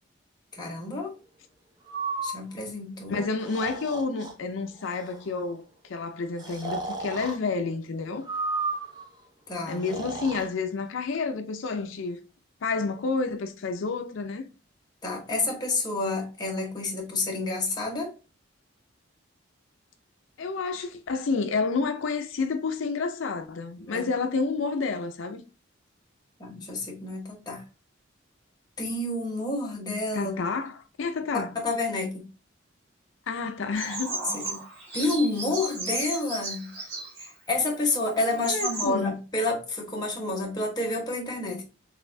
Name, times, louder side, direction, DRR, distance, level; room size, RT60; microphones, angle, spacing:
voice 1, 0.5-1.2 2.2-3.3 9.5-9.8 15.0-18.1 23.8-24.1 26.4-27.6 28.8-30.3 31.3-32.3 34.3-34.6 34.9-36.7 37.2-41.6, left 2 dB, 20° left, 1.1 m, -29 dB
Breathing, 1.9-2.4 3.4-4.3 4.8-5.2 6.4-7.4 8.2-9.1 9.8-10.5, right 3 dB, 20° right, 0.7 m, -33 dB
voice 2, 3.1-8.3 9.6-12.2 12.6-14.5 20.4-25.4 30.1-31.5 33.3-34.4 38.4-39.1, left 4 dB, 70° left, 0.4 m, -30 dB
Bird vocalization bird call bird song, 33.7-37.3 38.0-38.1 38.3-38.9, right 3 dB, 55° right, 2.2 m, -34 dB
4.0 x 3.4 x 2.6 m
head